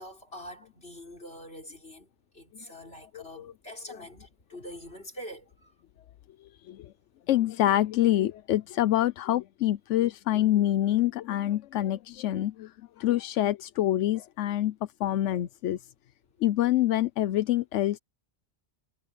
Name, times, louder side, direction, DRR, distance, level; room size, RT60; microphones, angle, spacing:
voice 1, 0.0-2.1 2.3-5.7, left 1 dB, 55° left, 5.8 m, -44 dB
voice 2, 3.1-3.5 6.7-6.9 7.3-14.7 15.0-15.8 16.4-18.0, left 13 dB, 85° left, 1.0 m, -26 dB
omnidirectional pair, 1.2 m